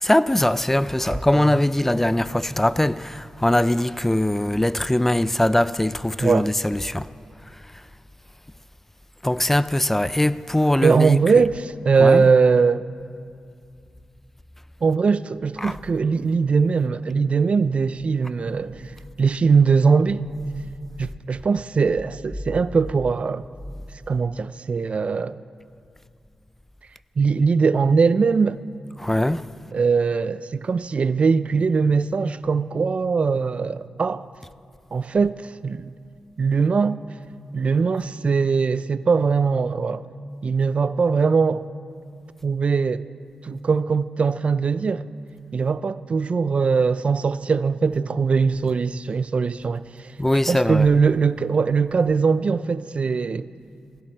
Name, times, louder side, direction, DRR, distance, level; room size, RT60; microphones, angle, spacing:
voice 1, 0.0-7.1 9.2-11.2 12.0-12.2 15.6-15.7 29.0-29.4 50.2-50.9, left 1 dB, 10° left, 0.4 m, -21 dB
voice 2, 1.1-1.6 6.2-6.5 10.8-12.9 14.8-18.9 19.2-20.2 21.0-23.4 24.1-25.4 27.2-28.6 29.7-34.3 34.9-35.9 36.4-37.0 37.5-40.1 40.4-41.7 42.4-43.1 43.4-45.0 45.5-50.1 50.5-53.5, right 5 dB, 55° right, 0.4 m, -21 dB
17.0 x 16.0 x 4.4 m
cardioid pair, 50°, 2 cm